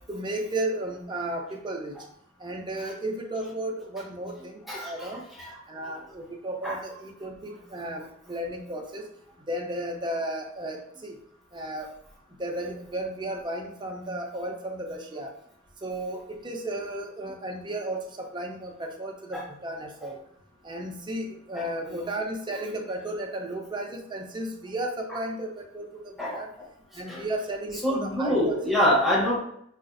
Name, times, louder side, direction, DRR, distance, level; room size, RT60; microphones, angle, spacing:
voice 1, 0.1-2.0 2.4-5.2 5.7-9.1 9.5-11.2 11.5-11.9 12.4-15.3 15.8-20.2 20.6-26.5 26.9-28.5, right 1 dB, 25° right, 1 dB, 0.6 m, -34 dB
voice 2, 27.8-29.4, equal, ahead, -5 dB, 0.9 m, -24 dB
4.8 x 2.4 x 2.5 m, 0.70 s
head